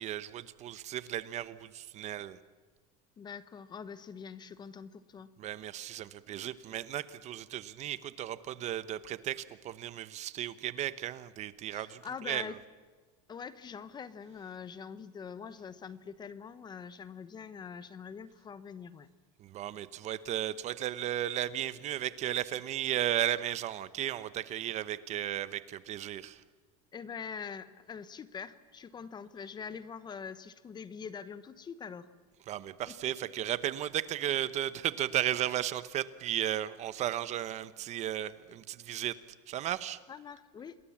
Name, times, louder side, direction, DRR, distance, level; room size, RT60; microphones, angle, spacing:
voice 1, 0.0-2.4 5.4-12.0 12.3-12.5 19.4-26.4 32.5-39.2 39.5-40.0, right 12 dB, 40° right, 15 dB, 0.9 m, -35 dB
voice 2, 3.2-5.3 11.7-12.6 13.3-19.1 26.9-32.1 32.9-33.0 40.1-40.8, left 6 dB, 25° left, 14 dB, 1.0 m, -44 dB
27.5 x 20.5 x 7.3 m, 1.4 s
supercardioid pair, 140°, 18 cm